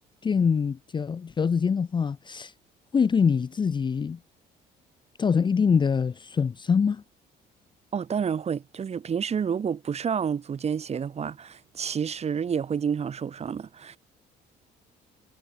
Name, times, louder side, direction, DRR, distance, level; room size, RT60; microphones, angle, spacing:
voice 1, 0.2-2.5 2.9-4.2 5.2-7.0, left 6 dB, 25° left, 0.7 m, -24 dB
voice 2, 7.9-14.0, right 7 dB, 40° right, 3.2 m, -29 dB
cardioid pair, 110°, 17 cm